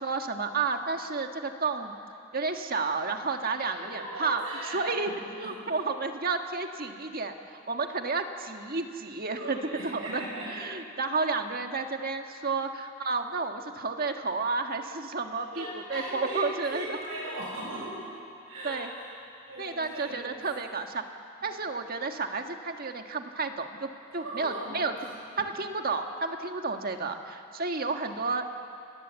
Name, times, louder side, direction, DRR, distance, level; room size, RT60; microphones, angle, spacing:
voice 1, 0.0-2.0 2.3-4.4 4.7-5.1 5.4-7.3 7.7-10.2 10.5-17.0 18.6-18.9 19.6-21.0 21.4-24.9 25.4-28.5, right 4 dB, 45° right, 5 dB, 1.6 m, -31 dB
voice 2, 3.9-5.1 5.4-5.5 9.3-10.6 12.4-12.6 15.5-18.0 18.5-19.1 19.5-20.4 24.2-25.4, right 1 dB, 80° right, -5 dB, 6.3 m, -38 dB
29.5 x 20.0 x 8.2 m, 2.5 s
head